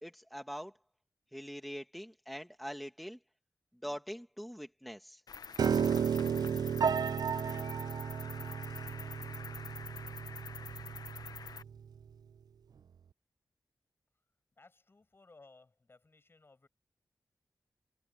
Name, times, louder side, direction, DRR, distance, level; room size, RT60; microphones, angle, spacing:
voice 1, 0.0-0.7 1.3-3.2 3.8-5.2, equal, ahead, 1.2 m, -43 dB
Cricket, 5.3-11.6, left 6 dB, 80° left, 0.6 m, -47 dB
Piano, 5.6-11.8, right 7 dB, 75° right, 0.4 m, -33 dB
voice 2, 14.6-16.7, left 3 dB, 35° left, 7.4 m, -60 dB
wide cardioid pair, 125°, 7 cm